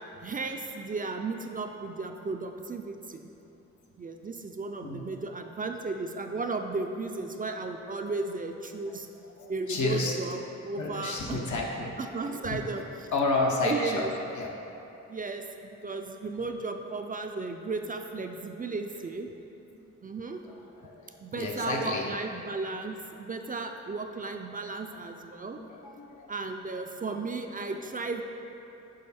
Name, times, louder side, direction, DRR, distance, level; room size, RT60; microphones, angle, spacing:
voice 1, 0.0-3.3 4.0-9.1 9.5-11.4 12.0-12.8 13.6-14.1 15.1-19.3 20.0-20.4 21.2-25.6 26.3-28.2, right 3 dB, 30° right, 4 dB, 0.4 m, -35 dB
voice 2, 9.3-10.1 10.8-11.9 12.2-12.6 13.1-14.1 14.4-14.5 19.7-19.8 20.5-22.1 25.5-26.3, left 2 dB, 80° left, -1 dB, 1.0 m, -31 dB
6.4 x 4.6 x 4.2 m, 3.0 s
cardioid pair, 85°, 29 cm